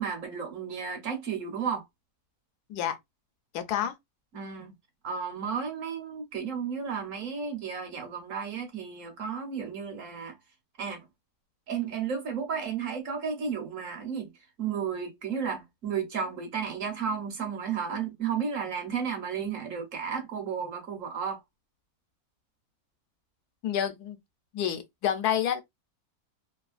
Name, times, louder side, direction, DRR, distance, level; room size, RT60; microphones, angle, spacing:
voice 1, 0.0-1.8 4.3-4.8 5.0-10.4 10.8-11.1 11.7-14.3 14.6-21.4, right 6 dB, 60° right, 1.2 m, -33 dB
voice 2, 3.5-3.9 23.6-24.2 24.5-25.6, left 10 dB, 80° left, 1.1 m, -28 dB
3.1 x 2.3 x 2.4 m
omnidirectional pair, 1.6 m